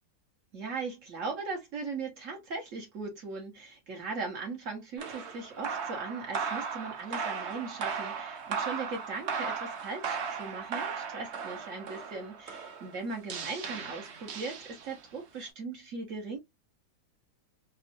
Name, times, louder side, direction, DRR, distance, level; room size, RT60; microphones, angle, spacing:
voice 1, 0.5-16.4, right 4 dB, 45° right, 1.4 m, -39 dB
sound 1, 5.0-15.2, right 6 dB, 65° right, 0.6 m, -37 dB
4.3 x 2.3 x 2.6 m
omnidirectional pair, 2.1 m